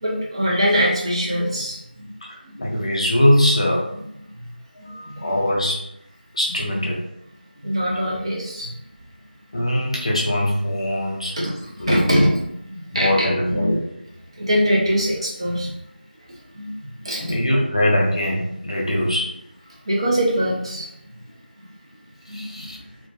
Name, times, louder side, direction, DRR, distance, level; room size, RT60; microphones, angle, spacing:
voice 1, 0.0-2.1 2.4-2.6 4.3-4.5 4.8-5.3 7.6-8.7 11.3-13.7 14.4-15.7 16.5-17.3 19.9-20.9 22.3-22.8, equal, 30° right, -4 dB, 0.5 m, -23 dB
voice 2, 2.2-3.9 4.8-5.9 6.3-7.0 9.5-11.4 11.8-12.0 12.9-14.0 17.2-19.4 22.3-22.8, left 1 dB, 35° left, -2 dB, 0.4 m, -22 dB
2.4 x 2.1 x 2.7 m, 0.78 s
figure-of-eight pair, 170°, 6 cm